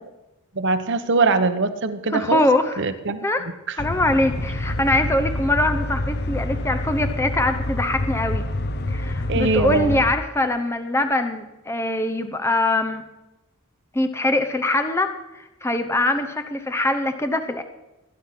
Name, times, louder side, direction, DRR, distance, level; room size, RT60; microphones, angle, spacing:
voice 1, 0.6-2.4 2.8-3.2 9.3-10.0, right 3 dB, 55° right, 9 dB, 1.0 m, -22 dB
voice 2, 2.1-2.8 3.2-3.4 3.8-8.5 8.9-13.0 13.9-17.6, left 2 dB, 10° left, 7 dB, 0.8 m, -23 dB
sound 1, 3.8-10.1, left 1 dB, 50° left, 0.8 m, -27 dB
19.5 x 10.0 x 5.9 m, 1.0 s
head